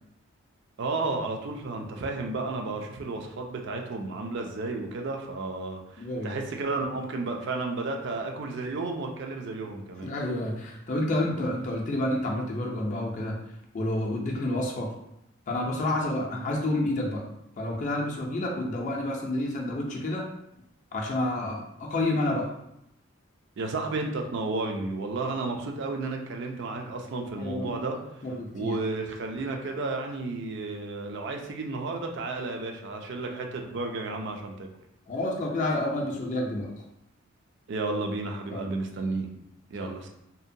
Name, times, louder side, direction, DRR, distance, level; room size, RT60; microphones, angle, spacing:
voice 1, 0.8-10.1 23.6-28.2 28.5-34.7 37.7-39.3 39.7-40.1, right 3 dB, 60° right, 3 dB, 0.4 m, -32 dB
voice 2, 6.0-6.3 10.0-13.5 13.7-14.9 15.5-17.3 17.6-20.3 20.9-22.5 27.2-27.8 28.2-28.8 35.1-36.7 38.5-38.7 39.1-39.2 39.8-39.9, left 1 dB, 40° left, -1 dB, 0.4 m, -29 dB
2.7 x 2.1 x 2.6 m, 0.79 s
head